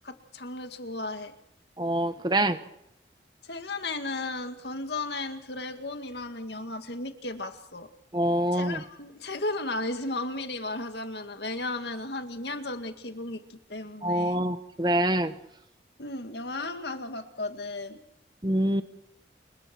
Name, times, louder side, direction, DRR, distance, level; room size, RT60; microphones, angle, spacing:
voice 1, 0.0-1.3 3.4-7.9 8.5-14.4 16.0-18.0, left 2 dB, 70° left, 7 dB, 2.2 m, -35 dB
voice 2, 1.8-2.6 8.1-8.8 14.0-15.3 18.4-18.8, right 1 dB, 25° right, 10 dB, 1.2 m, -25 dB
28.5 x 22.5 x 4.6 m, 0.79 s
head